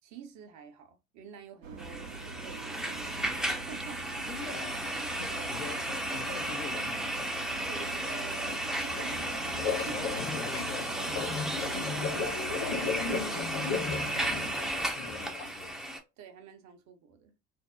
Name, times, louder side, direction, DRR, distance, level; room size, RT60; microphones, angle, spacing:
voice 1, 0.0-5.5 7.7-10.0 16.2-17.3, right 7 dB, 50° right, 0.7 m, -49 dB
sound 1, 1.6-14.5, right 5 dB, 85° right, 0.6 m, -44 dB
sound 2, 1.8-16.0, right 1 dB, ahead, 0.5 m, -34 dB
voice 2, 4.3-4.8 5.2-7.5 9.8-11.2 11.7-12.2 12.6-13.5 13.9-15.8, left 6 dB, 75° left, 0.6 m, -45 dB
sound 3, 8.9-15.6, left 5 dB, 50° left, 0.9 m, -36 dB
2.6 x 2.0 x 2.3 m
figure-of-eight pair, 60°, 38 cm